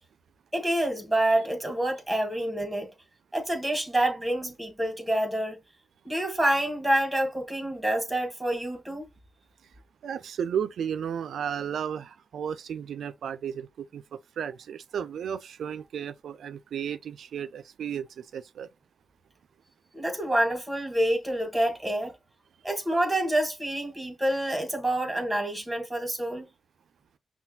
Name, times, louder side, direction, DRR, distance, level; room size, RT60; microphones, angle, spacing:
voice 1, 0.5-2.9 3.3-5.6 6.0-9.1 19.9-22.1 22.6-26.4, right 1 dB, 10° right, 1.5 m, -27 dB
voice 2, 10.0-18.7, right 8 dB, 80° right, 0.4 m, -34 dB
5.6 x 2.3 x 2.7 m
cardioid pair, 55°, 0 cm